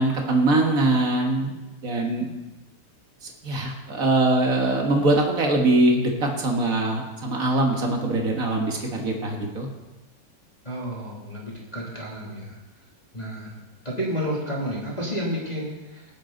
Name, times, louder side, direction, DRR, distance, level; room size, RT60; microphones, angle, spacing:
voice 1, 0.0-1.5 1.8-2.3 3.2-9.7, right 2 dB, 40° right, 1 dB, 1.3 m, -22 dB
voice 2, 10.6-12.6 13.1-13.6 13.8-16.1, equal, 15° left, -6 dB, 2.5 m, -31 dB
19.0 x 9.8 x 4.0 m, 1.1 s
omnidirectional pair, 3.8 m